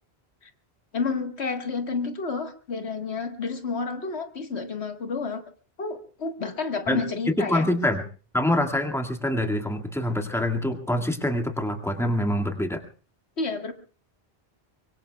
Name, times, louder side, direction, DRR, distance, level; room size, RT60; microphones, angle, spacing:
voice 1, 0.9-5.4 5.8-7.7 13.4-13.7, left 4 dB, 85° left, 5 dB, 1.8 m, -30 dB
voice 2, 6.9-8.0 8.3-12.8, left 1 dB, ahead, 4 dB, 1.9 m, -25 dB
24.5 x 23.5 x 2.3 m, 0.38 s
omnidirectional pair, 1.1 m